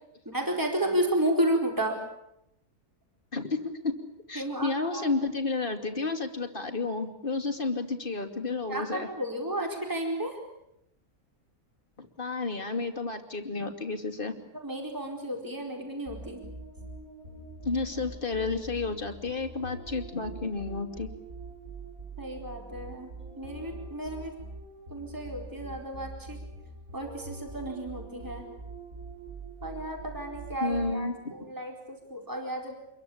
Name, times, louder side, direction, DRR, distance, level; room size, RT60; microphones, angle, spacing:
voice 1, 0.2-1.9 4.3-5.1 8.7-10.4 14.5-16.5 22.2-23.1 23.4-24.3 24.9-26.4 26.9-28.5 29.6-32.8, right 1 dB, 15° right, 2 dB, 4.6 m, -32 dB
voice 2, 4.3-9.1 12.0-14.3 17.6-21.1 30.6-31.2, left 3 dB, 35° left, 6 dB, 2.8 m, -31 dB
sound 1, 16.1-31.2, right 3 dB, 70° right, 7.3 m, -44 dB
27.0 x 22.5 x 8.7 m, 0.80 s
omnidirectional pair, 1.5 m